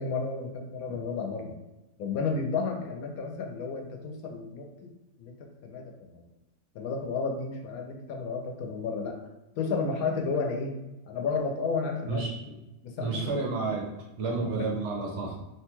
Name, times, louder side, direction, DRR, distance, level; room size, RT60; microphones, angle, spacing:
voice 1, 0.0-1.5 2.0-4.9 5.2-6.2 6.7-9.2 9.6-10.7 11.1-12.2 12.8-13.4 14.3-14.7, left 4 dB, 90° left, 3 dB, 1.0 m, -32 dB
voice 2, 12.1-12.5 13.0-13.9 14.2-15.4, right 3 dB, 65° right, -1 dB, 0.8 m, -31 dB
3.1 x 2.2 x 2.9 m, 1.0 s
omnidirectional pair, 1.5 m